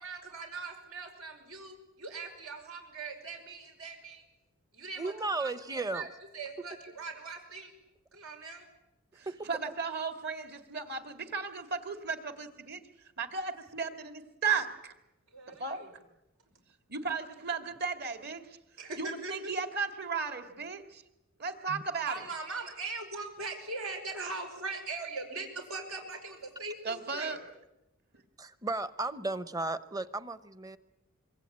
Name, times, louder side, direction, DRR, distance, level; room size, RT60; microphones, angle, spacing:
voice 1, 0.0-4.2 4.7-7.7 8.1-8.7 15.3-15.9 18.8-19.5 22.1-27.4, right 3 dB, 80° right, 4 dB, 5.7 m, -41 dB
voice 2, 5.0-6.1 9.3-9.5 21.7-21.8 28.4-30.8, right 2 dB, 15° right, 13 dB, 0.9 m, -35 dB
voice 3, 9.2-12.8 13.2-14.9 15.6-15.8 16.9-18.6 19.0-21.0 21.4-22.1 26.8-27.4, right 5 dB, 45° right, 7 dB, 2.4 m, -35 dB
25.5 x 23.5 x 8.7 m, 0.94 s
head